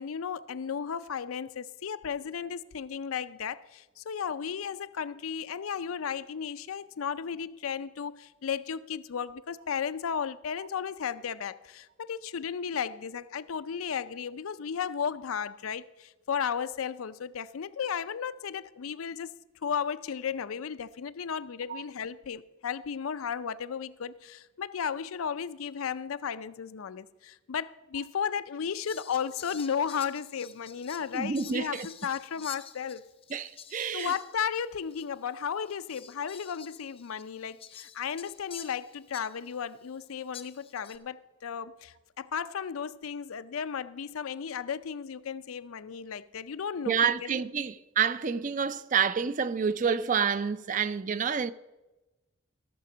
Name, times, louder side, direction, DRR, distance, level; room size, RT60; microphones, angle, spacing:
voice 1, 0.0-19.3 19.6-33.1 33.9-47.4, left 7 dB, 85° left, 0.5 m, -34 dB
Fowl, 28.8-34.7 34.9-35.1 35.6-39.6 40.3-41.0, left 8 dB, 25° left, 0.6 m, -49 dB
voice 2, 31.1-31.9 33.3-34.1 46.9-51.5, right 6 dB, 35° right, 0.4 m, -28 dB
14.0 x 6.7 x 6.2 m
head